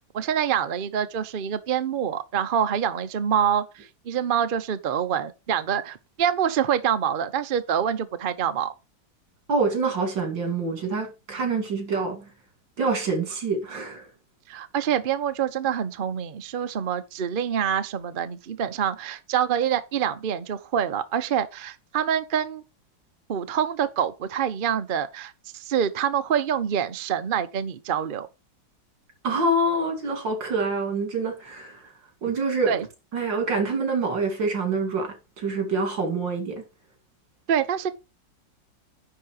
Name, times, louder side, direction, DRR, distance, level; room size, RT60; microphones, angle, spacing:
voice 1, 0.1-8.7 14.5-22.6 23.3-28.3 32.7-32.8 37.5-37.9, right 8 dB, 50° right, 0.6 m, -26 dB
voice 2, 9.5-12.3 12.8-14.1 29.2-31.9 32.2-32.8 33.1-36.6, right 3 dB, 75° right, 3.2 m, -26 dB
10.5 x 3.8 x 6.5 m
omnidirectional pair, 2.0 m